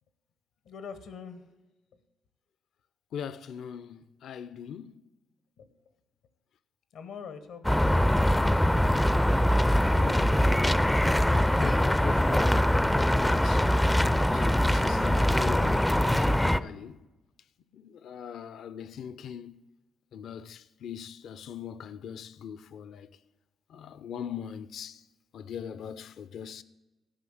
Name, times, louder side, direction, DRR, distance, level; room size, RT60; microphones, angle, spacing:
voice 1, 0.6-1.5 5.6-5.7 6.9-8.0, left 6 dB, 85° left, 1.1 m, -43 dB
voice 2, 3.1-5.0 9.9-10.9 11.5-13.7 14.3-17.0 17.7-19.6 20.1-23.1 23.7-25.0 25.3-26.6, left 8 dB, 70° left, 0.5 m, -41 dB
sound 1, 7.6-16.6, left 1 dB, 5° left, 0.4 m, -23 dB
12.5 x 5.4 x 7.8 m
cardioid pair, 90°, 0 cm